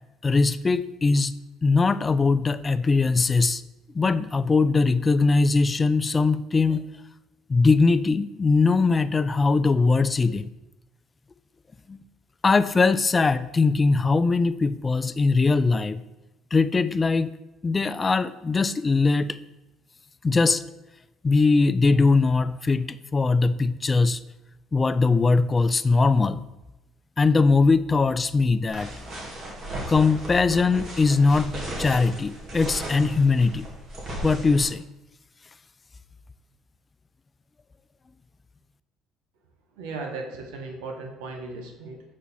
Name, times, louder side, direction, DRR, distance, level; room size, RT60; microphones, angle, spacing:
voice 1, 0.2-1.3 1.6-3.6 3.9-6.9 7.5-10.5 11.9-12.0 12.4-16.0 16.5-17.3 17.6-19.4 20.2-20.6 21.2-24.2 24.7-26.5 27.2-28.9 29.9-31.5 31.8-33.7 34.2-34.8, left 4 dB, 25° left, 14 dB, 0.3 m, -21 dB
sound 1, 28.7-34.7, right 1 dB, 50° right, 2.2 m, -36 dB
voice 2, 39.8-42.0, right 3 dB, 85° right, 3 dB, 1.1 m, -36 dB
6.2 x 4.0 x 4.2 m, 0.98 s
supercardioid pair, 85°, 0 cm